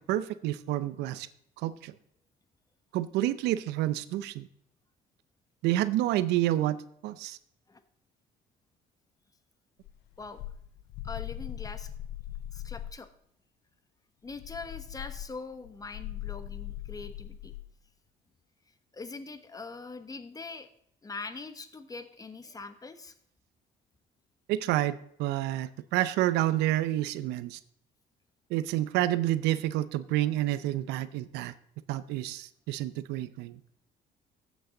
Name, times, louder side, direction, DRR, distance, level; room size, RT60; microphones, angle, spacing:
voice 1, 0.1-1.3 1.6-1.9 2.9-4.5 5.6-6.8 7.0-7.4 24.5-27.6 28.5-31.5 31.9-33.6, right 14 dB, 90° right, 15 dB, 0.6 m, -29 dB
sound 1, 9.8-13.1 14.3-17.7, left 12 dB, 80° left, 0.6 m, -40 dB
voice 2, 11.0-11.9 12.5-13.1 14.2-17.5 18.9-20.7 21.0-23.1, left 4 dB, 20° left, 10 dB, 1.1 m, -42 dB
14.0 x 8.3 x 3.9 m, 0.70 s
cardioid pair, 110°, 17 cm